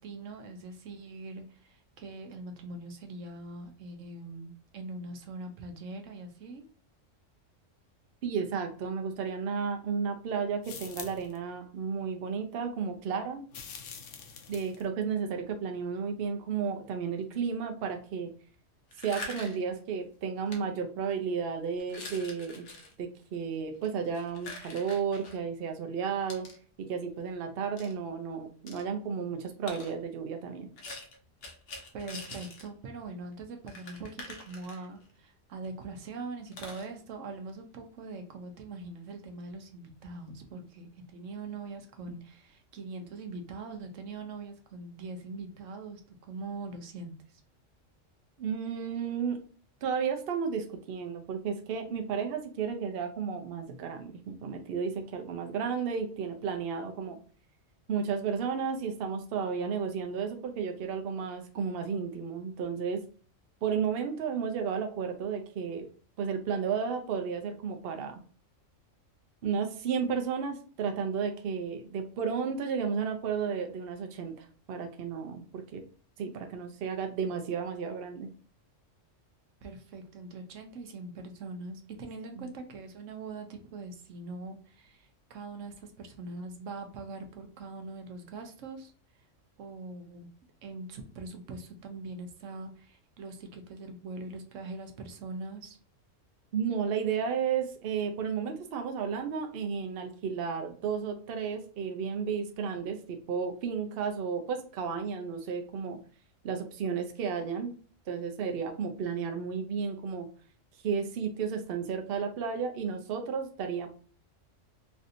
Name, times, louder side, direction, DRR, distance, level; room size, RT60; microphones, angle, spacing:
voice 1, 0.0-6.6 31.9-47.4 79.6-89.3 89.6-90.3 90.6-95.8, right 3 dB, 75° right, 5 dB, 1.0 m, -42 dB
voice 2, 8.2-13.4 14.5-18.3 19.0-22.7 23.0-26.5 26.9-30.7 48.4-49.4 49.8-57.2 57.9-63.0 63.6-65.9 66.2-68.2 69.4-75.8 76.2-78.3 82.4-82.5 96.5-106.0 106.4-107.7 108.1-110.3 110.8-113.9, right 6 dB, 60° right, 4 dB, 0.7 m, -33 dB
sound 1, 10.6-11.4 13.5-14.8, left 6 dB, 80° left, 1.0 m, -45 dB
sound 2, 18.9-19.7 20.5-20.6 21.1-21.3 21.8-22.9 23.7-25.4 26.3-26.6 27.8-27.9 28.7-28.8 29.7-29.9 30.8-32.7 33.0-33.1 33.3-33.4 33.7-35.1 35.6-35.7 36.0-36.1 36.5-36.9, left 2 dB, 55° left, 0.9 m, -44 dB
3.2 x 2.7 x 2.5 m, 0.42 s
omnidirectional pair, 1.3 m